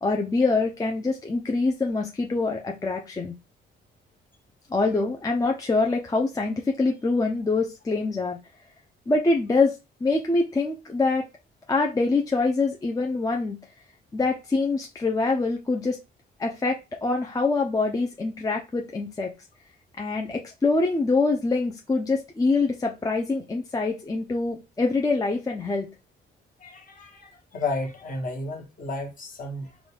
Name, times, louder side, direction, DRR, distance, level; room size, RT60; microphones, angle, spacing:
voice 1, 0.0-3.3 4.7-8.4 9.1-9.8 10.0-11.2 11.7-13.6 14.1-16.0 16.4-19.3 20.0-25.9, left 3 dB, 20° left, 0.5 m, -25 dB
voice 2, 26.6-29.8, left 2 dB, 45° left, 1.3 m, -33 dB
3.8 x 2.3 x 3.3 m
cardioid pair, 90°, 20 cm